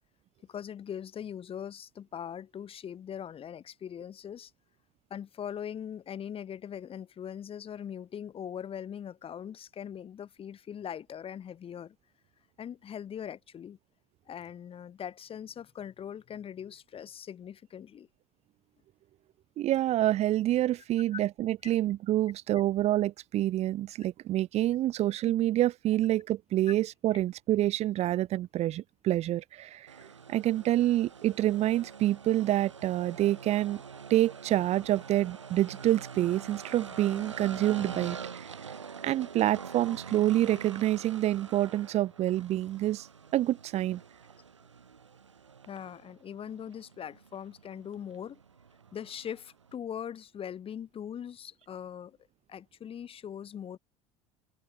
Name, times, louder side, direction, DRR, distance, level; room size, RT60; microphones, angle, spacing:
voice 1, 0.5-4.5 5.1-12.0 12.6-13.8 14.3-18.1 21.1-21.2 21.6-21.7 26.7-26.8 45.7-48.4 48.9-52.2 52.5-53.8, left 9 dB, 40° left, 5.7 m, -41 dB
voice 2, 19.6-30.0 30.3-33.8 34.1-38.5 39.0-43.1 43.3-44.0, right 14 dB, 45° right, 0.9 m, -27 dB
sound 1, 29.9-49.8, right 6 dB, 90° right, 1.4 m, -45 dB
hypercardioid pair, 70°, 15 cm